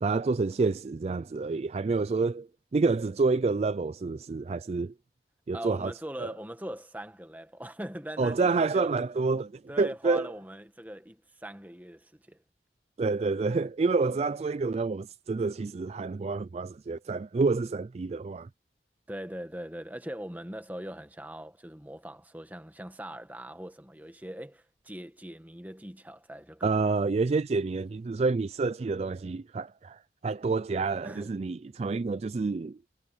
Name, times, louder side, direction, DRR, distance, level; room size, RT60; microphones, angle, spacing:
voice 1, 0.0-2.5 2.7-4.9 5.5-5.9 8.2-10.3 13.0-18.5 26.6-32.8, right 4 dB, 35° right, 0.3 m, -28 dB
voice 2, 5.5-9.0 9.7-12.4 19.1-26.9 31.0-31.3, right 1 dB, 10° right, 1.8 m, -41 dB
head